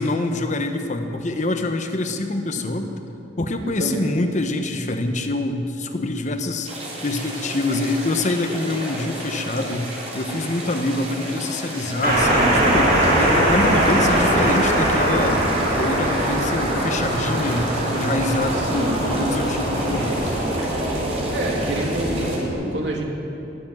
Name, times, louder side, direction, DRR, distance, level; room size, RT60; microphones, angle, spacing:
voice 1, 0.0-2.9 3.4-6.7 7.0-15.5 15.8-20.4, left 2 dB, 40° left, 6 dB, 0.9 m, -25 dB
voice 2, 3.6-4.1 18.6-19.0 21.3-23.0, right 1 dB, 80° right, 0 dB, 2.2 m, -27 dB
sound 1, 6.6-22.4, right 1 dB, 35° right, 3.4 m, -33 dB
sound 2, 12.0-22.5, right 1 dB, 55° right, 4.5 m, -21 dB
20.0 x 7.7 x 7.6 m, 2.8 s
head